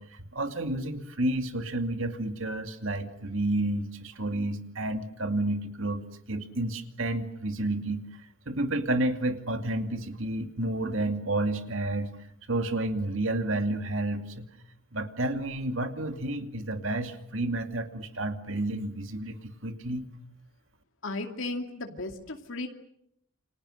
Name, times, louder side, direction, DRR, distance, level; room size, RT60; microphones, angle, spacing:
voice 1, 0.0-8.0 8.5-12.1 12.5-14.5 14.9-20.1, right 1 dB, 70° right, 7 dB, 2.6 m, -30 dB
voice 2, 21.0-22.7, left 2 dB, 65° left, 4 dB, 2.5 m, -35 dB
29.5 x 25.5 x 6.6 m, 0.74 s
head